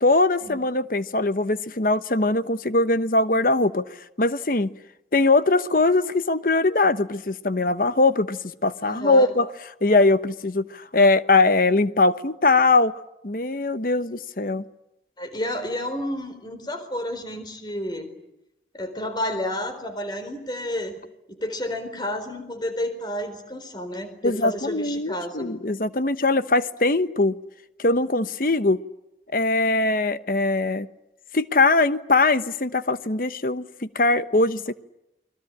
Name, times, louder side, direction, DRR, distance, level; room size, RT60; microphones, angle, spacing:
voice 1, 0.0-3.8 4.2-4.7 5.1-9.5 9.8-14.6 24.2-27.4 27.8-28.8 29.3-30.9 31.3-34.7, left 2 dB, 50° left, 12 dB, 1.0 m, -21 dB
voice 2, 8.8-9.3 15.2-18.1 18.7-21.0 21.3-25.5, left 1 dB, 25° left, 8 dB, 4.2 m, -31 dB
29.5 x 22.0 x 8.7 m, 0.87 s
head